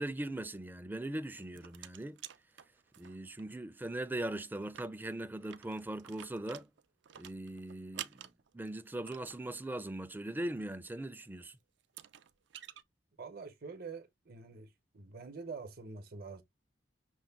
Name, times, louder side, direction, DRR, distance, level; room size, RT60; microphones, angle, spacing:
voice 1, 0.0-2.2 3.0-6.7 7.2-11.6, right 1 dB, 10° right, 0.4 m, -40 dB
sound 1, 1.1-3.4 3.7-3.8 4.1-4.2 4.6-9.4 11.2-11.3 11.8-12.8, right 11 dB, 70° right, 0.4 m, -50 dB
voice 2, 13.2-14.7 14.9-16.4, right 4 dB, 55° right, 0.8 m, -45 dB
6.2 x 2.2 x 3.5 m
head